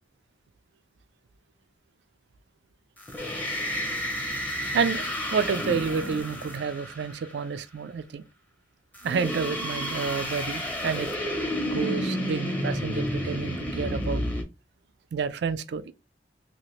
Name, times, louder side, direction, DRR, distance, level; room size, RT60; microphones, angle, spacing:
sound 1, 3.0-7.4 8.9-14.4, equal, 10° left, 0.7 m, -31 dB
voice 1, 4.7-5.0 5.3-8.3 9.0-11.1 11.7-14.2 15.1-15.9, right 5 dB, 70° right, 0.4 m, -29 dB
2.8 x 2.5 x 3.0 m
head